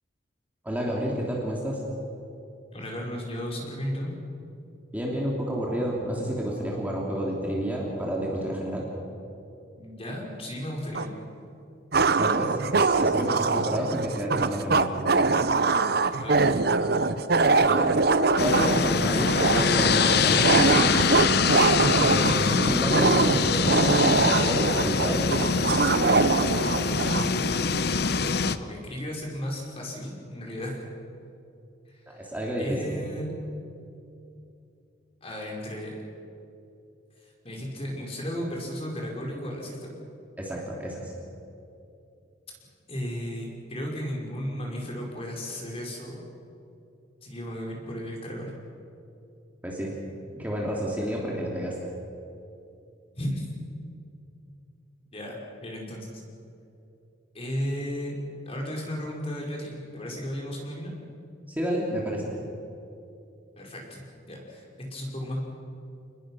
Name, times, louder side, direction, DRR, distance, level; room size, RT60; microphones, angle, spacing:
voice 1, 0.6-1.8 4.9-8.8 12.1-15.3 17.7-17.9 18.4-21.3 22.0-25.3 32.1-32.8 40.4-41.1 49.6-49.9 50.4-51.7 61.5-62.3, equal, 10° right, -3 dB, 3.1 m, -30 dB
voice 2, 2.7-4.1 9.8-11.1 16.1-16.5 27.1-28.1 28.6-30.8 32.1-32.3 32.6-33.4 35.2-36.0 37.4-39.9 42.9-46.2 47.2-48.5 53.1-53.5 55.1-56.2 57.3-58.2 58.4-60.9 63.6-65.4, equal, 30° left, -1 dB, 5.0 m, -34 dB
sound 1, 10.9-11.1 11.9-27.3, right 3 dB, 55° right, 0.8 m, -23 dB
sound 2, 18.4-28.6, left 5 dB, 55° left, 0.8 m, -24 dB
29.0 x 20.5 x 6.3 m, 2.7 s
head